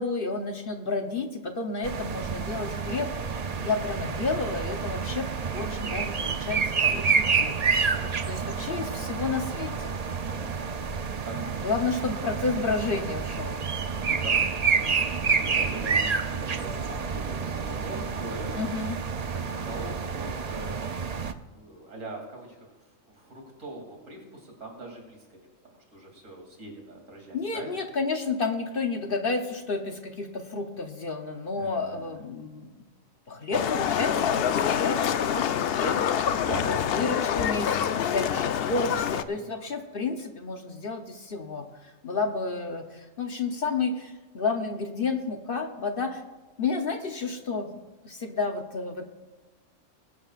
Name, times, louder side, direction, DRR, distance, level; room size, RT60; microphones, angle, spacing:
voice 1, 0.0-5.3 5.5-7.5 8.3-9.9 11.6-13.6 18.5-19.0 27.3-32.7 33.3-36.3 36.6-46.2 46.6-47.8 48.0-49.0, left 4 dB, 50° left, 5 dB, 1.0 m, -31 dB
sound 1, 1.8-21.3, right 5 dB, 45° right, 0.5 m, -29 dB
voice 2, 7.9-9.0 10.2-10.5 11.2-11.5 14.0-18.8 19.3-20.8 21.5-27.8 31.6-32.1 36.3-36.9 39.3-39.7 42.1-42.2, right 2 dB, 70° right, 0 dB, 3.4 m, -42 dB
Livestock farm animals working animals, 33.5-39.2, left 8 dB, 65° left, 0.6 m, -26 dB
21.0 x 11.5 x 2.5 m, 1.2 s
omnidirectional pair, 1.4 m